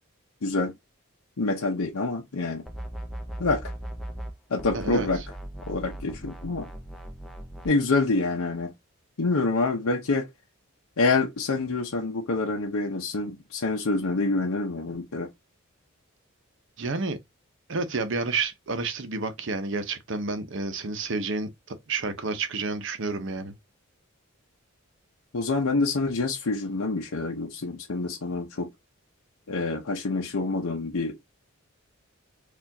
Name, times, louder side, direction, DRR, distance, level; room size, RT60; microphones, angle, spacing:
voice 1, 0.4-0.7 1.4-2.6 3.4-3.7 4.5-5.2 5.7-6.7 7.6-8.7 9.2-10.3 11.0-15.3 25.3-28.7 29.5-31.2, left 3 dB, 85° left, 0.7 m, -26 dB
sound 1, 2.7-4.3 4.6-7.7, right 1 dB, ahead, 0.4 m, -38 dB
voice 2, 4.7-5.1 16.8-17.2 17.7-23.5, right 3 dB, 60° right, 0.7 m, -30 dB
4.3 x 2.5 x 2.6 m
head